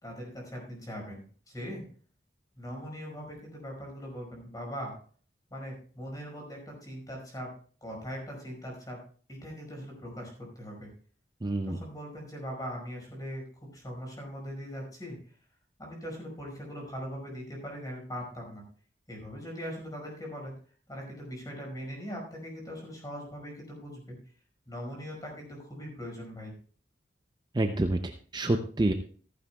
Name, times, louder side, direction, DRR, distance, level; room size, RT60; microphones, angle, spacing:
voice 1, 0.0-1.8 2.6-4.9 5.5-7.5 7.8-9.0 9.3-10.9 11.6-13.5 13.7-15.2 15.8-18.6 19.1-20.5 20.9-24.2 24.7-26.5, equal, 20° left, 0 dB, 5.1 m, -40 dB
voice 2, 11.4-11.8 27.5-28.9, right 1 dB, 25° right, 6 dB, 0.6 m, -28 dB
15.0 x 14.0 x 2.3 m, 0.43 s
head